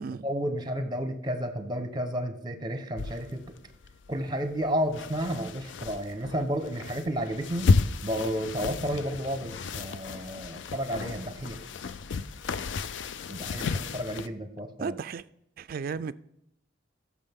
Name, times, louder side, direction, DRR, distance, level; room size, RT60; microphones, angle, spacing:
voice 1, 0.2-3.4 4.1-7.7 8.0-11.6 13.3-15.0, equal, 25° right, 1.0 m, -32 dB
sound 1, 3.0-14.3, left 4 dB, 70° left, 0.4 m, -32 dB
voice 2, 14.8-15.2 15.6-16.1, right 5 dB, 50° right, 0.3 m, -34 dB
15.0 x 6.3 x 3.6 m
head